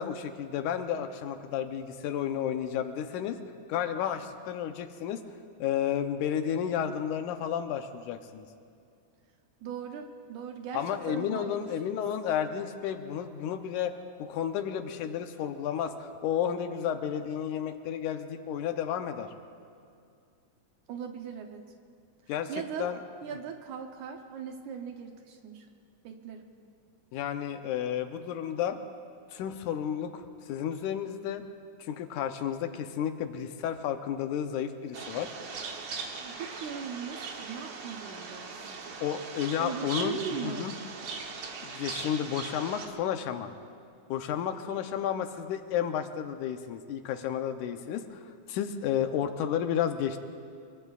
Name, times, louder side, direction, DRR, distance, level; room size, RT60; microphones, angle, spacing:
voice 1, 0.0-3.4 3.7-5.2 5.6-8.5 10.7-13.9 14.2-19.3 22.3-22.5 22.8-23.0 27.1-28.8 29.3-30.2 30.5-31.4 31.8-35.4 39.0-40.7 41.6-43.5 44.1-48.2 48.5-50.2, left 9 dB, 90° left, 7 dB, 2.3 m, -32 dB
voice 2, 9.6-11.7 20.9-21.7 22.5-23.0 23.2-25.7 26.0-26.5 36.2-39.0 39.6-40.8, right 7 dB, 80° right, 4 dB, 2.3 m, -39 dB
sound 1, 34.9-42.9, right 4 dB, 60° right, 1.2 m, -40 dB
24.5 x 23.5 x 2.4 m, 2.3 s
omnidirectional pair, 3.4 m